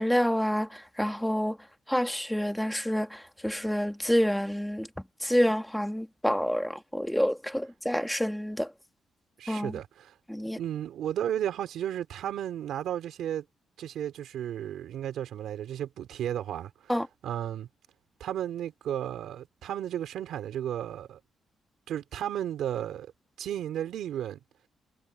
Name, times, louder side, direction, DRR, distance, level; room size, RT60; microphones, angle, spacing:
voice 1, 0.0-1.6 1.9-4.9 5.2-8.7 9.5-9.7 10.3-10.6 16.9-17.1, equal, ahead, 1.4 m, -28 dB
voice 2, 9.4-10.1 10.6-13.4 13.8-16.9 17.2-17.7 18.2-21.2 21.9-23.1 23.4-24.4, right 10 dB, 80° right, 3.7 m, -33 dB
wide cardioid pair, 165°, 0 cm